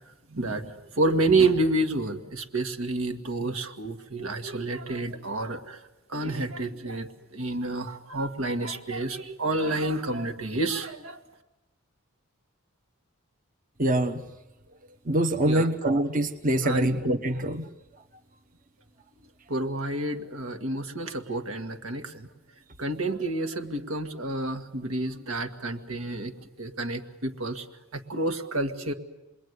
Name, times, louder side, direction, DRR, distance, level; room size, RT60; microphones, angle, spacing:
voice 1, 0.3-5.8 6.1-11.2 15.4-15.7 16.6-17.0 19.5-22.3 22.8-26.3 26.6-27.7 27.9-28.9, right 2 dB, 85° right, 5 dB, 1.9 m, -29 dB
voice 2, 13.8-14.2 15.1-17.7, right 1 dB, 40° right, 4 dB, 1.1 m, -24 dB
28.0 x 21.5 x 9.7 m, 0.99 s
head